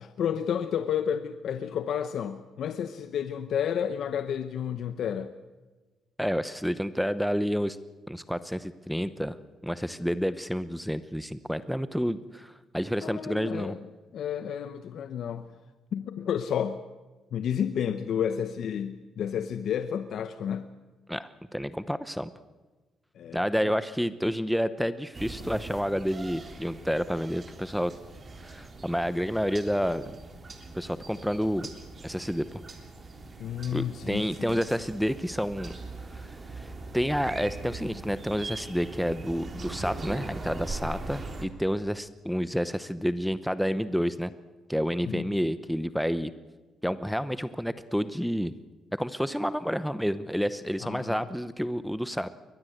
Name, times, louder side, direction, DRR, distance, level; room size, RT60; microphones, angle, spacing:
voice 1, 0.0-5.3 13.0-13.8 14.1-15.5 15.9-16.8 17.3-20.7 23.1-23.7 33.4-34.6 45.0-45.4 50.8-51.2, left 8 dB, 70° left, 10 dB, 0.9 m, -31 dB
voice 2, 6.2-7.8 8.1-9.4 9.6-13.7 21.1-22.3 23.3-27.9 28.4-30.2 30.7-31.7 32.0-32.6 33.7-35.8 36.1-44.3 44.7-46.3 46.8-48.5 48.9-52.3, equal, ahead, 13 dB, 0.8 m, -29 dB
sound 1, 25.1-41.5, right 3 dB, 35° right, 3.4 m, -41 dB
22.0 x 19.5 x 8.0 m, 1.2 s
cardioid pair, 90°, 0 cm